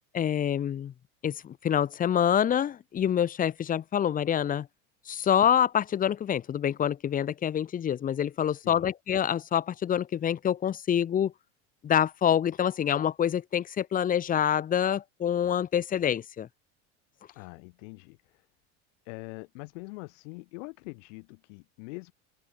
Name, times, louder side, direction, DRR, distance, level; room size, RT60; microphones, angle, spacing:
voice 1, 0.1-0.9 1.2-4.7 5.1-11.3 11.8-16.5, left 9 dB, 25° left, 0.6 m, -26 dB
voice 2, 8.5-8.9 17.3-18.5 19.0-22.1, left 29 dB, 75° left, 3.2 m, -44 dB
open air
supercardioid pair, 105°, 37 cm